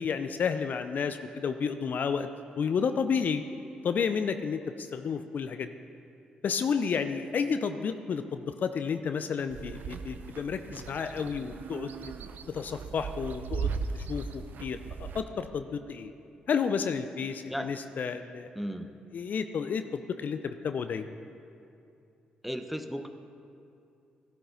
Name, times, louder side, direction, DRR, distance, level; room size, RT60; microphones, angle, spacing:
voice 1, 0.0-2.3 2.6-3.4 3.8-5.7 6.4-12.1 12.5-16.1 16.5-18.5 19.1-21.1, left 6 dB, 55° left, 9 dB, 0.5 m, -31 dB
sound 1, 9.5-15.2, right 5 dB, 60° right, 0.6 m, -38 dB
voice 2, 18.5-18.9 22.4-23.1, equal, ahead, 7 dB, 0.9 m, -35 dB
14.5 x 11.5 x 4.0 m, 2.6 s
hypercardioid pair, 40°, 4 cm